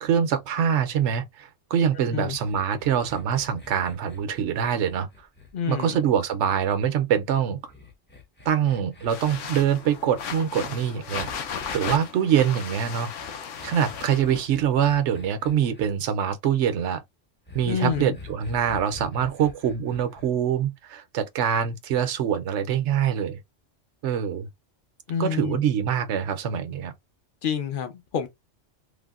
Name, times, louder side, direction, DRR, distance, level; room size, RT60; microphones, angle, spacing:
voice 1, 0.0-5.1 5.7-7.6 8.5-11.3 11.7-13.1 13.6-17.0 17.5-23.4 24.0-24.5 25.2-26.9, right 8 dB, 70° right, 0.9 m, -24 dB
sound 1, 2.3-6.7 7.7-11.8 13.1-15.9 17.5-20.3, left 4 dB, 15° left, 0.4 m, -47 dB
voice 2, 5.5-6.0 17.7-18.2 25.1-25.6 27.4-28.3, left 7 dB, 55° left, 0.7 m, -28 dB
sound 2, 9.1-14.5, left 6 dB, 75° left, 1.0 m, -35 dB
3.3 x 2.1 x 2.3 m
omnidirectional pair, 1.3 m